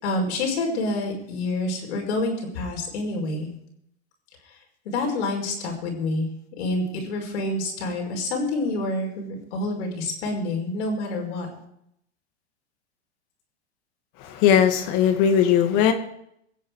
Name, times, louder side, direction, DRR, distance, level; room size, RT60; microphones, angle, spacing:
voice 1, 0.0-3.5 4.9-6.3 6.6-11.5, left 2 dB, 75° left, 1 dB, 5.6 m, -27 dB
voice 2, 14.2-15.9, left 8 dB, 55° left, 6 dB, 2.4 m, -19 dB
23.5 x 8.4 x 4.9 m, 0.75 s
hypercardioid pair, 105°, 34 cm